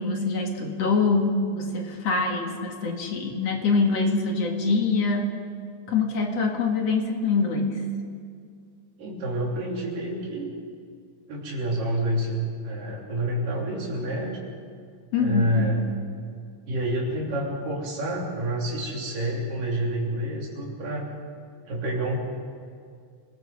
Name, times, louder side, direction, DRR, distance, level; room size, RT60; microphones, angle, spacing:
voice 1, 0.0-5.3 5.9-7.8 15.1-15.7, left 4 dB, 55° left, 2 dB, 2.8 m, -24 dB
voice 2, 9.0-10.6 11.3-14.4 15.2-15.8 16.7-21.1 21.7-22.2, right 1 dB, 85° right, -2 dB, 4.9 m, -28 dB
28.0 x 19.5 x 5.3 m, 2.2 s
omnidirectional pair, 3.7 m